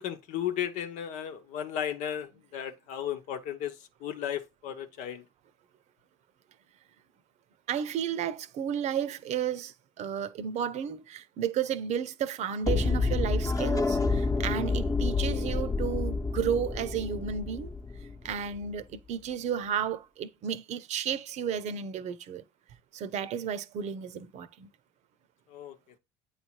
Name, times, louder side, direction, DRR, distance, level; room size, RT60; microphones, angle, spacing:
voice 1, 0.0-5.2 25.5-25.8, left 10 dB, 70° left, 1.0 m, -34 dB
voice 2, 7.7-17.7 18.2-22.4 22.9-24.7, right 8 dB, 60° right, 0.8 m, -33 dB
sound 1, 12.6-18.6, left 3 dB, 25° left, 0.9 m, -29 dB
8.6 x 3.3 x 4.5 m
supercardioid pair, 75°, 13 cm